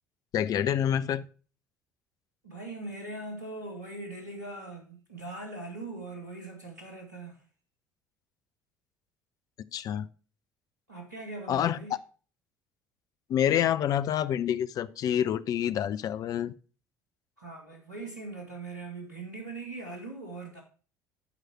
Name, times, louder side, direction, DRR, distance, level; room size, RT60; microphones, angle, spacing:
voice 1, 0.3-1.3 9.7-10.1 11.5-11.8 13.3-16.5, left 10 dB, 45° left, 0.6 m, -27 dB
voice 2, 2.4-7.4 10.9-11.9 17.4-20.6, right 2 dB, 85° right, 2.1 m, -41 dB
12.0 x 4.9 x 4.5 m
figure-of-eight pair, 60°, 9 cm